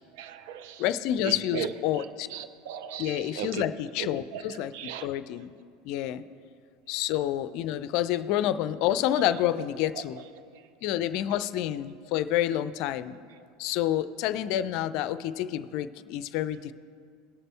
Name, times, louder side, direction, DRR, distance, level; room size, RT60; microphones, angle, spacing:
voice 1, 0.1-0.8 1.2-3.6 4.0-5.1 10.5-10.7, right 8 dB, 65° right, 11 dB, 0.5 m, -37 dB
voice 2, 0.8-2.3 3.0-5.5 5.8-6.2 6.9-10.2 10.8-13.2 13.6-16.7, left 12 dB, 60° left, 14 dB, 0.4 m, -28 dB
18.5 x 6.6 x 3.4 m, 2.2 s
hypercardioid pair, 80°, 0 cm